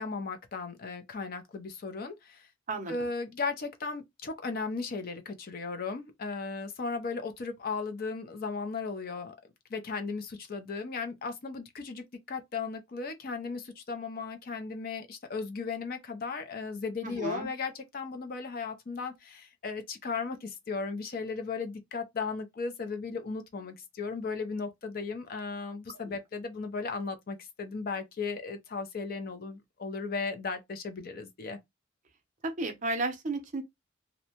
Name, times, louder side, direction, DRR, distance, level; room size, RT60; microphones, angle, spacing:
voice 1, 0.0-2.5 2.9-9.4 9.7-31.6, left 4 dB, 45° left, 0.5 m, -36 dB
voice 2, 2.7-3.1 17.0-17.5 26.1-26.2 32.4-33.6, right 2 dB, 40° right, 0.6 m, -33 dB
2.6 x 2.1 x 2.8 m
head